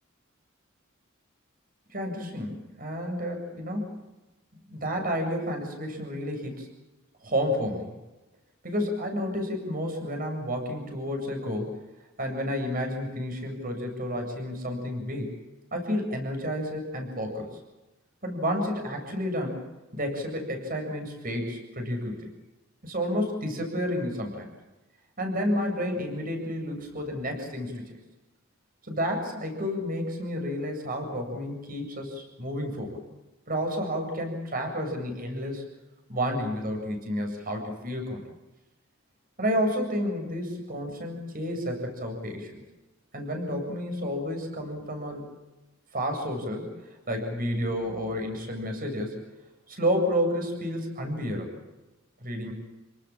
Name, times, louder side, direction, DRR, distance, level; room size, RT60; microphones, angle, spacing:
voice 1, 1.9-4.0 4.7-6.7 7.2-7.9 8.6-11.8 12.2-15.3 15.7-17.5 18.2-19.6 19.9-22.3 22.8-24.5 25.2-28.0 28.9-33.0 33.5-35.6 36.1-38.2 39.4-42.6 43.1-45.2 45.9-46.7 47.1-49.2 49.7-51.6 52.2-52.5, equal, 45° right, 4 dB, 7.7 m, -30 dB
29.5 x 19.0 x 7.5 m, 1.1 s
head